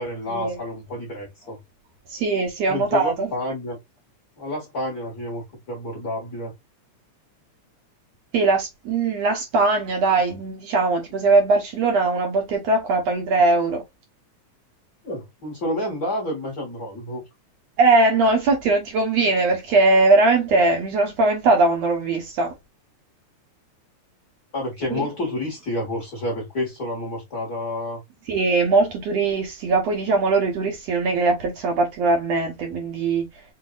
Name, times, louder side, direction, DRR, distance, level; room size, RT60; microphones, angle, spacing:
voice 1, 0.0-1.6 2.7-3.8 4.4-6.5 15.0-17.2 24.5-28.0, left 1 dB, 40° left, 1.6 m, -29 dB
voice 2, 2.1-3.3 8.3-13.8 17.8-22.5 24.9-25.1 28.3-33.3, right 3 dB, 65° right, 1.8 m, -20 dB
5.8 x 2.6 x 2.4 m
omnidirectional pair, 3.6 m